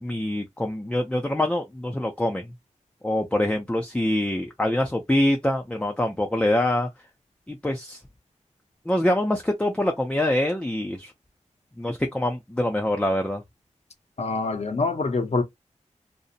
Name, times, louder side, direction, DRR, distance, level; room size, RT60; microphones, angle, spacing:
voice 1, 0.0-2.5 3.0-6.9 7.5-8.0 8.9-11.1 11.8-13.4, left 1 dB, 10° left, 0.4 m, -25 dB
voice 2, 14.2-15.4, left 3 dB, 55° left, 0.7 m, -25 dB
2.6 x 2.0 x 2.4 m
wide cardioid pair, 65°, 13 cm